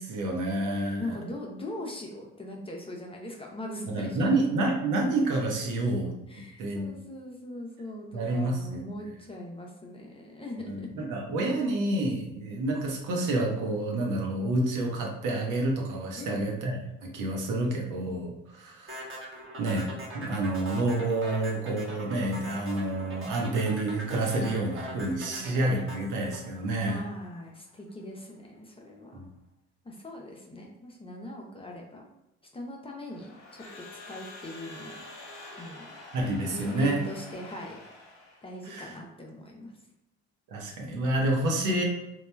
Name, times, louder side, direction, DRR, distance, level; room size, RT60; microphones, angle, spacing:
voice 1, 0.0-1.1 3.9-6.1 6.6-6.9 8.1-8.8 10.7-19.1 19.6-27.0 29.1-29.3 36.1-37.0 38.7-38.9 40.5-41.8, right 2 dB, 60° right, 0 dB, 0.8 m, -29 dB
voice 2, 0.9-4.4 6.3-11.0 16.2-16.4 25.3-25.5 26.9-29.2 29.8-32.1 32.5-35.0 35.6-36.0 36.5-37.8 38.4-39.7, left 1 dB, 15° left, -1 dB, 0.5 m, -40 dB
sound 1, 18.9-27.2, equal, 35° right, 1.2 m, -41 dB
Crowd / Alarm, 33.0-38.6, left 2 dB, 55° left, 0.8 m, -47 dB
2.9 x 2.2 x 2.2 m, 0.89 s
hypercardioid pair, 65°, 35 cm